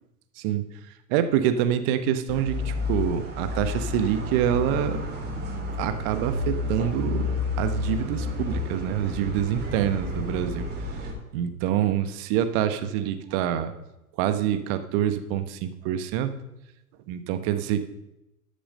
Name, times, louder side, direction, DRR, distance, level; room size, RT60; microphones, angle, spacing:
voice 1, 1.1-5.0 5.8-7.3 7.6-10.7 11.3-13.7 14.2-16.3 17.1-17.8, right 10 dB, 40° right, 10 dB, 1.2 m, -26 dB
sound 1, 2.3-11.1, left 2 dB, 20° right, 3.4 m, -30 dB
13.0 x 6.9 x 5.5 m, 0.91 s
figure-of-eight pair, 95°, 45 cm